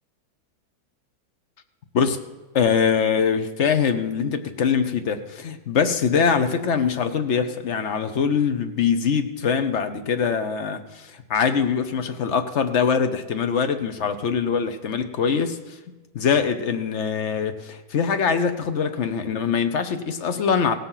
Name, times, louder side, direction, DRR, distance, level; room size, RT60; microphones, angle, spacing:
voice 1, 2.5-15.6 16.1-20.7, left 6 dB, 55° left, 8 dB, 0.8 m, -23 dB
17.0 x 7.4 x 5.6 m, 1.2 s
omnidirectional pair, 2.1 m